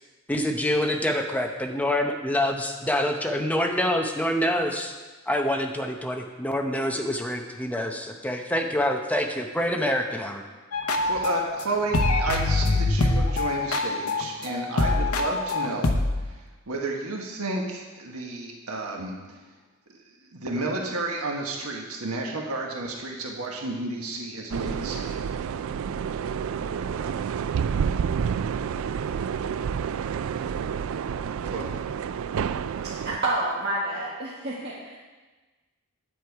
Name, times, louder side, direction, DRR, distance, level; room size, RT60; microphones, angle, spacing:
voice 1, 0.3-4.9 5.3-10.4, left 1 dB, 5° left, 3 dB, 0.7 m, -26 dB
sound 1, 10.7-11.6 11.9-16.3, left 2 dB, 80° left, 0.9 m, -24 dB
voice 2, 11.0-19.4 20.3-25.3 31.5-31.8, right 2 dB, 85° right, 0 dB, 1.4 m, -32 dB
sound 2, 24.5-33.2, right 7 dB, 65° right, 0.3 m, -29 dB
voice 3, 32.8-35.0, right 2 dB, 50° right, -7 dB, 1.6 m, -29 dB
9.4 x 8.3 x 4.7 m, 1.3 s
head